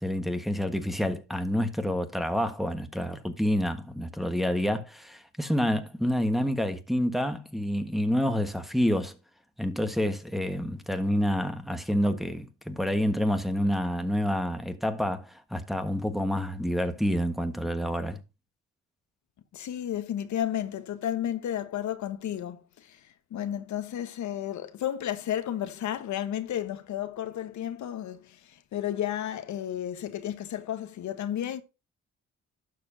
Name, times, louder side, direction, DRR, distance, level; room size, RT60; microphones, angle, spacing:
voice 1, 0.0-9.1 9.6-18.2, equal, ahead, 1.5 m, -28 dB
voice 2, 19.5-31.6, left 11 dB, 70° left, 1.3 m, -32 dB
12.0 x 6.9 x 2.7 m
cardioid pair, 90°, 30 cm